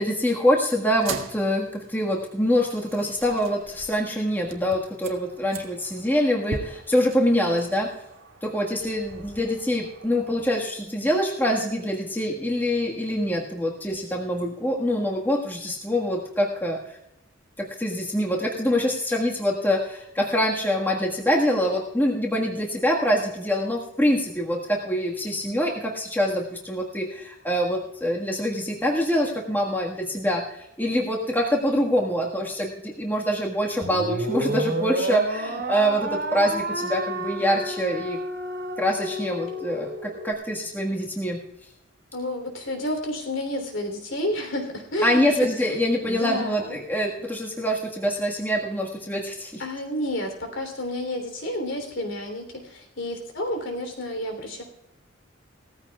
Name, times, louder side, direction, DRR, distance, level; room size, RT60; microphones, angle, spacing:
voice 1, 0.0-7.9 8.4-16.8 17.6-38.2 38.8-41.4 45.0-49.6, equal, 10° left, -1 dB, 1.5 m, -25 dB
sound 1, 0.9-10.5, right 3 dB, 80° right, 1.5 m, -41 dB
voice 2, 7.2-7.7 42.1-46.8 49.6-54.6, left 1 dB, 70° left, 4 dB, 3.2 m, -31 dB
sound 2, 33.8-40.3, right 1 dB, 55° right, 2.5 m, -30 dB
18.0 x 14.5 x 2.3 m, 0.85 s
head